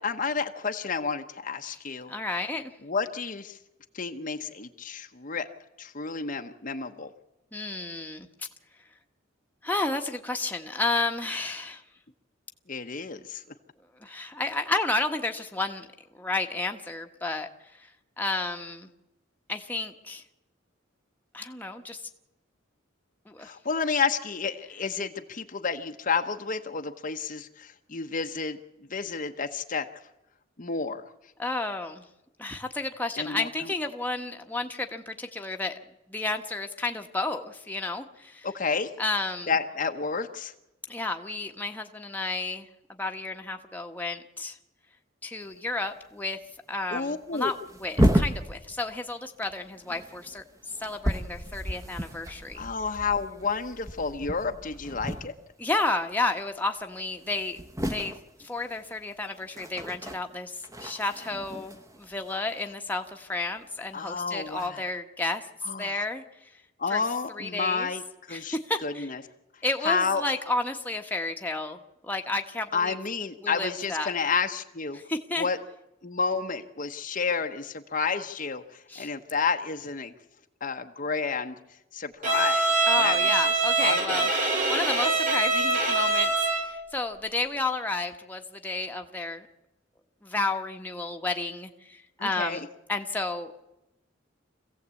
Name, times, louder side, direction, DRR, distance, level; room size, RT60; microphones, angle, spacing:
voice 1, 0.0-2.1 2.8-3.6 3.9-5.5 5.8-7.1 12.7-13.4 23.4-28.6 28.9-29.8 30.6-31.0 33.2-33.7 38.4-38.9 39.5-40.5 46.9-47.5 52.6-55.3 63.9-64.8 65.6-66.0 66.8-68.6 68.8-69.2 69.8-70.2 72.7-75.0 75.4-75.6 76.0-80.1 80.6-81.6 81.9-83.5 83.8-84.2 92.2-92.7, left 5 dB, 40° left, 5 dB, 1.0 m, -30 dB
voice 2, 2.1-2.7 7.5-8.3 9.6-11.8 14.0-15.9 16.1-17.5 18.2-18.9 19.5-20.2 21.3-22.0 23.3-23.5 31.4-32.0 32.4-35.7 36.1-38.5 39.0-39.5 40.9-42.7 43.0-44.5 45.2-46.4 46.7-47.5 47.8-50.4 50.8-52.6 55.6-57.6 57.9-58.1 58.4-60.5 60.8-65.4 65.8-66.2 66.9-67.0 67.3-67.9 68.3-69.1 69.6-71.8 72.0-73.0 73.4-74.1 75.1-75.5 78.9-79.1 82.9-84.3 84.7-89.5 90.2-93.6, left 2 dB, 10° left, 3 dB, 1.2 m, -31 dB
sound 1, 45.5-45.7 46.0-46.1 46.8-46.9 47.2-49.1 49.4-55.7 55.9-56.3 56.7-56.8 57.0-63.3 64.1-64.7, equal, 15° right, 1.1 m, -32 dB
Bowed string instrument, 82.2-86.8, right 3 dB, 40° right, 3.2 m, -24 dB
25.5 x 16.0 x 8.4 m, 0.95 s
head